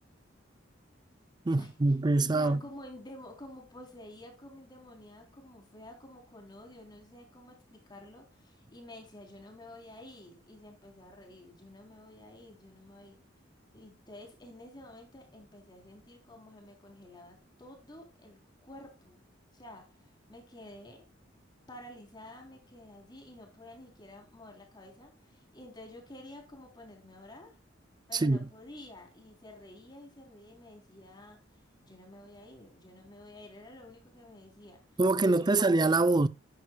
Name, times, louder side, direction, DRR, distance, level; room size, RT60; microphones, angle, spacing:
voice 1, 1.5-2.6 28.1-28.4 35.0-36.3, right 2 dB, 20° right, 0.5 m, -24 dB
voice 2, 2.3-13.2 13.7-19.2 19.5-21.1 21.7-27.5 28.1-31.4 31.8-34.8 35.2-35.6, left 1 dB, 25° left, 3.7 m, -50 dB
11.5 x 9.3 x 2.3 m
head